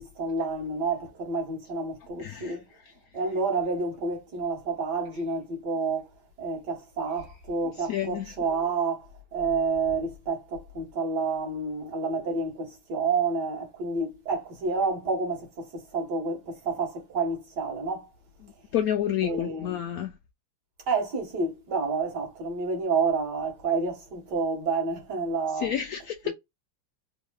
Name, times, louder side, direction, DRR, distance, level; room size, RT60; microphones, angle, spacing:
voice 1, 0.0-2.7 3.1-18.1 19.2-19.8 20.9-25.8 26.2-26.3, right 4 dB, 60° right, 2.1 m, -29 dB
voice 2, 2.2-2.6 2.8-2.9 7.9-8.3 18.7-20.1 25.5-26.3, left 10 dB, 90° left, 0.7 m, -29 dB
4.0 x 3.4 x 2.3 m
omnidirectional pair, 2.1 m